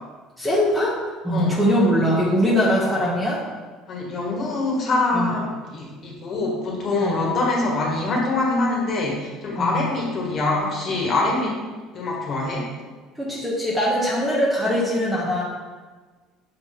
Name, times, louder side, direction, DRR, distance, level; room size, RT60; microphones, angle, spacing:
voice 1, 0.4-1.0 1.2-3.4 5.1-5.3 7.0-7.2 9.6-9.8 13.2-15.4, equal, 5° right, -5 dB, 1.0 m, -21 dB
voice 2, 3.9-11.6 11.9-12.7, left 2 dB, 35° left, -3 dB, 1.6 m, -24 dB
6.8 x 3.8 x 3.7 m, 1.4 s
cardioid pair, 145°, 0 cm